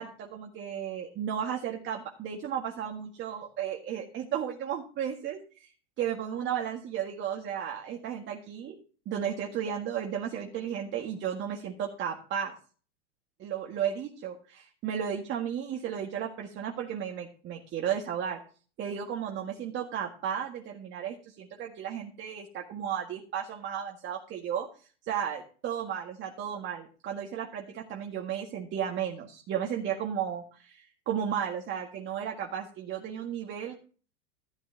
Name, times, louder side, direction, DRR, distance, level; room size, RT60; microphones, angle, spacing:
voice 1, 0.0-5.7 6.0-8.8 9.1-12.5 13.4-18.4 18.8-24.7 25.1-33.8, right 9 dB, 35° right, 1 dB, 1.8 m, -34 dB
12.5 x 12.5 x 2.8 m, 0.39 s
supercardioid pair, 130°, 35 cm